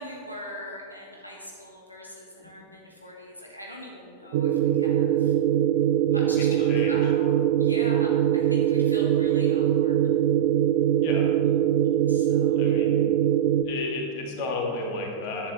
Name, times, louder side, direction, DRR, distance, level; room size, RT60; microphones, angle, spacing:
voice 1, 0.0-5.3 6.1-10.1 11.1-11.5 12.1-12.4, left 1 dB, 90° left, -3 dB, 1.5 m, -42 dB
sound 1, 4.3-13.6, right 11 dB, 55° right, 0.4 m, -22 dB
voice 2, 6.2-7.1 11.0-11.3 12.6-13.1 13.6-15.5, left 3 dB, 45° left, 0 dB, 1.9 m, -33 dB
10.5 x 8.4 x 4.1 m, 2.4 s
figure-of-eight pair, 90°, 0 cm